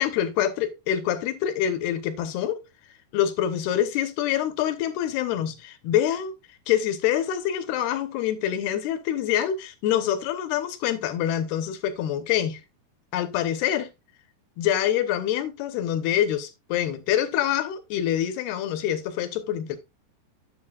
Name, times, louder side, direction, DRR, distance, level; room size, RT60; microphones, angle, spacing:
voice 1, 0.0-2.6 3.1-6.3 6.7-12.6 13.1-13.9 14.6-19.8, left 10 dB, 80° left, 2.9 m, -26 dB
9.8 x 8.2 x 2.4 m
omnidirectional pair, 4.7 m